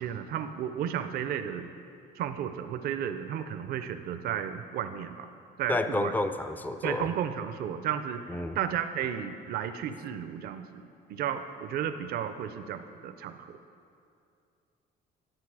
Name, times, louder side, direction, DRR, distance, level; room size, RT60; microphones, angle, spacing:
voice 1, 0.0-1.7 2.2-5.3 5.6-6.1 6.8-10.8 11.1-13.6, right 9 dB, 65° right, 9 dB, 0.5 m, -33 dB
voice 2, 5.7-7.1 8.3-8.6, left 2 dB, 10° left, 10 dB, 0.5 m, -30 dB
10.5 x 8.1 x 4.8 m, 2.5 s
cardioid pair, 110°, 17 cm